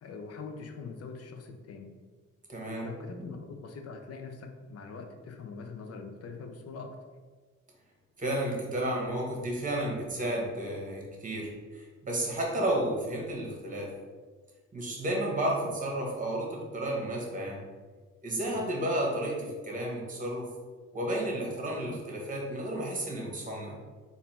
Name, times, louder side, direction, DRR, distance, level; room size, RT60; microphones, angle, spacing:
voice 1, 0.0-1.9 2.7-7.0 18.4-18.6, left 4 dB, 55° left, 4 dB, 0.7 m, -43 dB
voice 2, 2.5-2.9 8.2-13.9 14.7-17.6 18.2-20.5 20.9-23.8, right 1 dB, 25° right, -1 dB, 1.4 m, -32 dB
4.0 x 2.8 x 4.3 m, 1.4 s
cardioid pair, 90°, 30 cm